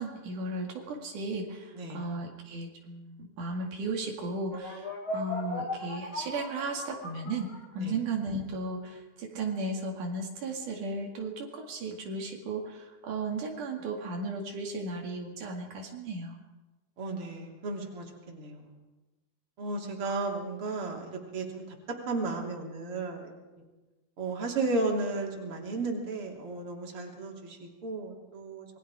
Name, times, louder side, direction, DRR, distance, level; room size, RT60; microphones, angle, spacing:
voice 1, 0.0-16.4, right 2 dB, 80° right, 1 dB, 3.7 m, -35 dB
sound 1, 4.5-8.0, left 1 dB, 40° left, 6.0 m, -37 dB
voice 2, 17.0-18.6 19.6-21.6 22.1-23.3 24.2-28.7, right 3 dB, 45° right, 0 dB, 3.9 m, -34 dB
27.5 x 21.5 x 4.9 m, 1.2 s
omnidirectional pair, 3.5 m